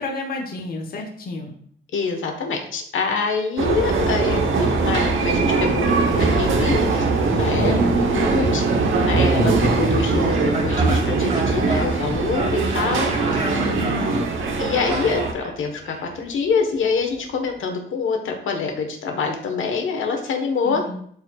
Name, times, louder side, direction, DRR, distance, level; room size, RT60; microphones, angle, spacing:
voice 1, 0.0-1.5 7.6-8.0 13.4-14.2 20.6-21.0, left 2 dB, 50° left, 2 dB, 1.0 m, -30 dB
voice 2, 1.9-7.7 8.1-8.6 9.1-13.5 14.6-20.8, left 4 dB, 80° left, 4 dB, 1.2 m, -25 dB
sound 1, 3.6-15.3, right 3 dB, 85° right, 1.0 m, -21 dB
sound 2, 10.3-17.6, right 3 dB, 35° right, 1.1 m, -33 dB
11.0 x 4.5 x 2.4 m, 0.63 s
wide cardioid pair, 155°, 20 cm